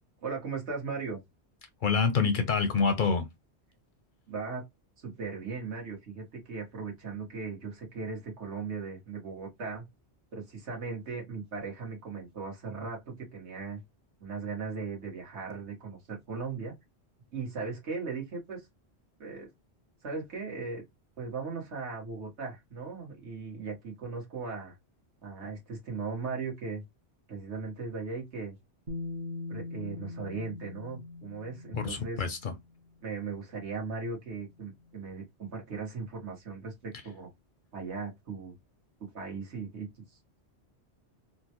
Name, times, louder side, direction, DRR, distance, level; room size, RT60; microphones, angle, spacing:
voice 1, 0.2-1.2 4.3-4.7 5.0-9.9 10.3-13.8 14.2-16.7 17.3-18.7 19.2-19.5 20.0-20.8 21.2-24.7 25.2-26.8 27.3-28.5 29.5-32.2 33.0-37.3 37.7-38.5 39.0-40.4, right 4 dB, 80° right, 1.6 m, -38 dB
voice 2, 1.8-3.3 31.7-32.5, left 5 dB, 60° left, 0.6 m, -27 dB
Bass guitar, 28.9-32.8 33.9-34.0, left 3 dB, 55° right, 1.1 m, -41 dB
3.7 x 2.2 x 2.8 m
omnidirectional pair, 1.1 m